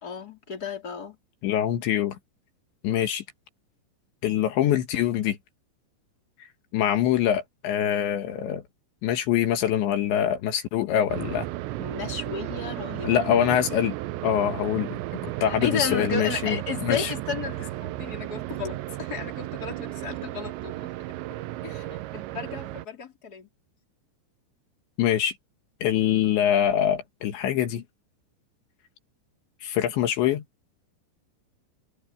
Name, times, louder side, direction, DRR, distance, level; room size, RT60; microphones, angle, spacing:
voice 1, 0.0-1.2 11.8-13.2 15.4-20.9 21.6-23.5, left 5 dB, 20° left, 3.8 m, -33 dB
voice 2, 1.4-2.2 2.8-3.2 4.2-5.4 6.7-8.6 9.0-11.5 13.0-14.0 14.2-15.0 15.4-17.1 25.0-25.3 25.8-27.8 29.6-30.4, left 10 dB, 75° left, 3.8 m, -24 dB
sound 1, 11.1-22.9, right 16 dB, 80° right, 2.9 m, -34 dB
omnidirectional pair, 5.4 m